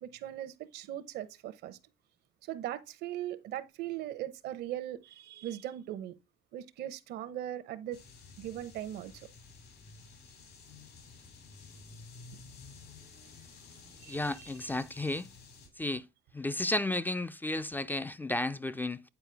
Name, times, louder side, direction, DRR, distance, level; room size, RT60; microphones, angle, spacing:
voice 1, 0.0-1.8 2.4-6.1 6.5-8.0 8.4-9.3 14.0-14.5, right 12 dB, 80° right, 0.8 m, -39 dB
sound 1, 7.9-15.7, left 4 dB, 70° left, 2.7 m, -53 dB
voice 2, 14.1-15.3 15.8-16.0 16.3-19.0, left 2 dB, 10° left, 0.4 m, -33 dB
9.0 x 4.4 x 3.4 m
cardioid pair, 110°, 17 cm